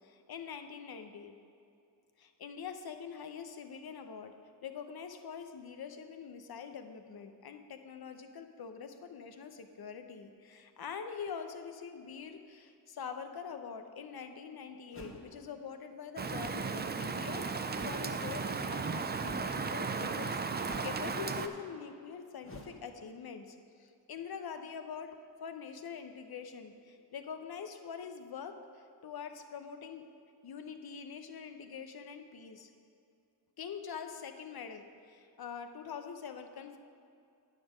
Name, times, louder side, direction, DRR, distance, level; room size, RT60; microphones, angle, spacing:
voice 1, 0.0-1.4 2.2-4.3 4.6-30.1 30.4-32.7 33.6-36.8, left 6 dB, 55° left, 7 dB, 0.8 m, -44 dB
sound 1, 14.9-15.4 16.4-16.7 17.7-18.1 19.2-19.5 20.6-21.1 22.4-22.8, equal, 30° left, 1.6 m, -48 dB
Rain, 16.2-21.5, right 4 dB, 25° right, 0.5 m, -35 dB
9.2 x 7.3 x 5.1 m, 2.5 s
cardioid pair, 65°, 44 cm